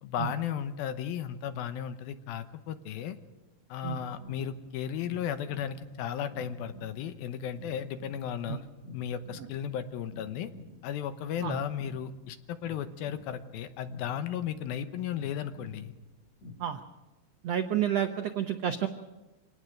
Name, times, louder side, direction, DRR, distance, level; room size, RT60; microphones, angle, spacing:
voice 1, 0.0-3.2 3.7-8.6 8.9-10.5 10.8-15.9, left 9 dB, 85° left, 10 dB, 2.9 m, -35 dB
sound 1, 4.1-16.5, left 2 dB, 55° left, 3.9 m, -50 dB
voice 2, 17.4-18.9, right 10 dB, 85° right, 7 dB, 1.4 m, -30 dB
26.0 x 18.5 x 6.5 m, 1.1 s
omnidirectional pair, 4.2 m